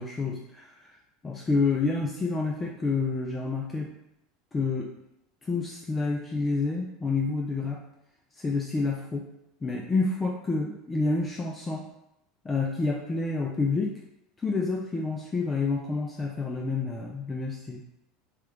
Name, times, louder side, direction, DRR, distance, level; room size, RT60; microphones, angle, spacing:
voice 1, 0.0-0.9 1.2-3.9 4.5-4.9 5.4-7.8 8.4-9.3 9.6-11.9 12.4-13.9 14.4-17.8, left 3 dB, 20° left, 0 dB, 0.3 m, -28 dB
3.0 x 2.3 x 3.2 m, 0.84 s
supercardioid pair, 110°, 0 cm